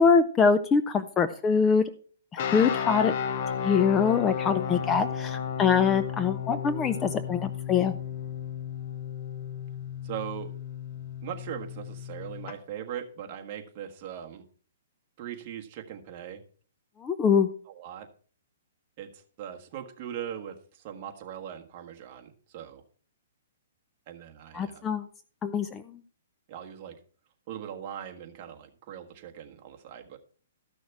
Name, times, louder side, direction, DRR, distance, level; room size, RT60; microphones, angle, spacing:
voice 1, 0.0-1.8 2.3-3.1 3.6-7.9 17.0-17.5 24.5-25.0 25.4-25.8, left 6 dB, 15° left, 10 dB, 0.5 m, -24 dB
sound 1, 2.4-12.5, left 8 dB, 40° left, 0.8 m, -33 dB
voice 2, 10.0-10.5 11.2-14.4 15.2-16.4 17.7-18.1 19.0-22.8 24.1-24.9 26.5-27.0 27.5-30.2, right 10 dB, 35° right, 3 dB, 1.5 m, -40 dB
13.5 x 6.3 x 4.6 m, 0.42 s
hypercardioid pair, 160°, 0 cm